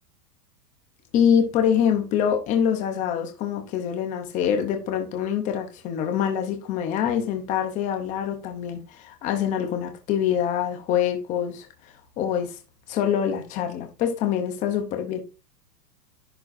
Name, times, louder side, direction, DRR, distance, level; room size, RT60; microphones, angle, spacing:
voice 1, 1.1-11.7 12.2-12.5 12.9-15.2, left 8 dB, 15° left, 0.7 m, -25 dB
11.0 x 4.3 x 2.5 m
hypercardioid pair, 155°, 50 cm